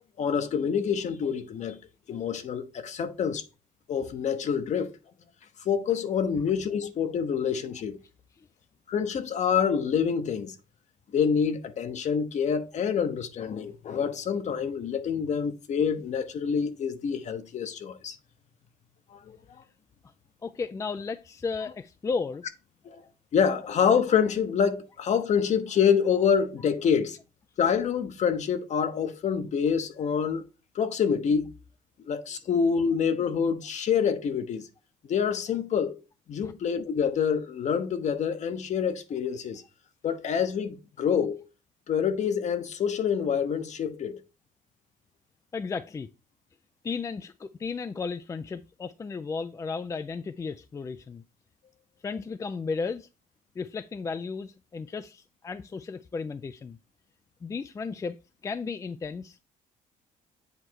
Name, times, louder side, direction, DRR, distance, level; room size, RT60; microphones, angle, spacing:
voice 1, 0.2-1.8 2.1-3.4 3.9-4.9 5.6-8.0 8.9-10.5 11.1-18.2 19.1-19.4 22.8-23.0 23.3-27.2 27.6-30.5 30.7-31.5 32.1-34.7 35.1-36.0 36.3-39.6 40.0-41.4 41.9-44.2, left 7 dB, 50° left, 0.9 m, -26 dB
voice 2, 20.4-22.4 36.4-36.5 45.5-46.1 46.8-51.2 52.0-53.1 53.6-56.8 57.4-58.2 58.4-59.4, left 4 dB, 20° left, 0.3 m, -34 dB
8.0 x 3.1 x 4.6 m
cardioid pair, 105°, 15 cm